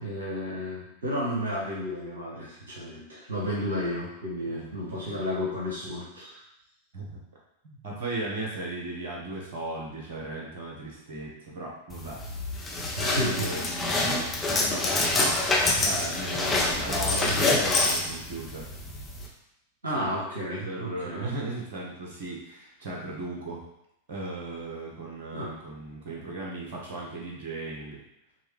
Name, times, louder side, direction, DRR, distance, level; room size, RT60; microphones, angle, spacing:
voice 1, 0.0-6.4 12.9-13.5 19.8-21.3 25.3-25.5, equal, 75° right, -5 dB, 1.1 m, -32 dB
voice 2, 7.8-12.2 13.1-15.4 15.8-18.7 19.9-20.1 20.4-23.6 24.1-28.0, right 2 dB, 55° right, -3 dB, 1.2 m, -36 dB
sound 1, 11.9-19.3, left 2 dB, 15° left, 0.9 m, -26 dB
6.0 x 2.4 x 3.3 m, 0.81 s
figure-of-eight pair, 90°, 0 cm